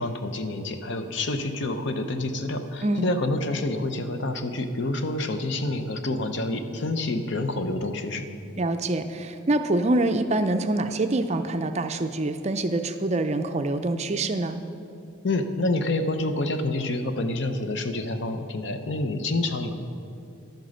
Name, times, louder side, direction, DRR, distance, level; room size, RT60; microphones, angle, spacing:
voice 1, 0.0-8.3 15.2-19.8, left 2 dB, 55° left, 8 dB, 0.7 m, -28 dB
voice 2, 8.6-14.6, right 2 dB, 30° right, 8 dB, 0.4 m, -25 dB
10.5 x 9.2 x 6.4 m, 2.6 s
head